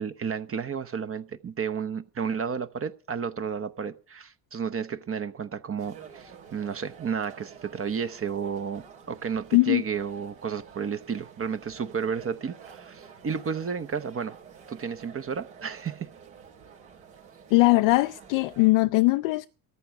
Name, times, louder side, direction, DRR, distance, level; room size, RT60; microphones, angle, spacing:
voice 1, 0.0-14.4 14.7-16.1, right 6 dB, 30° right, 0.9 m, -32 dB
sound 1, 5.8-18.7, right 7 dB, 75° right, 4.3 m, -49 dB
voice 2, 9.5-9.8 17.5-19.5, left 21 dB, 65° left, 0.6 m, -20 dB
14.0 x 6.9 x 9.2 m
hypercardioid pair, 65°, 49 cm